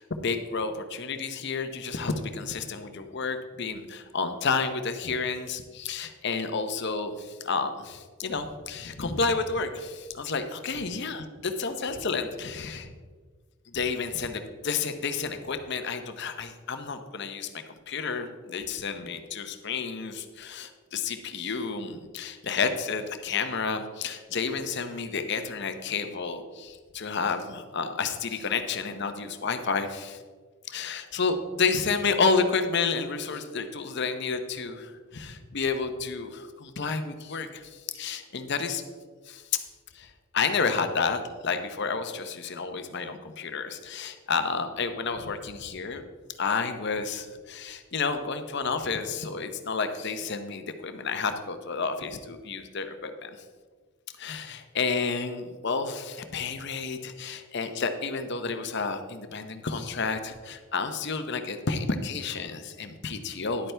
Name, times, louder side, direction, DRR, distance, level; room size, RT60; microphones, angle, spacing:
voice 1, 0.0-12.9 13.7-30.2 30.7-38.8 39.3-39.6 39.9-46.0 46.4-53.3 54.2-63.7, left 4 dB, 55° left, 8 dB, 0.7 m, -30 dB
11.0 x 8.8 x 3.3 m, 1.5 s
head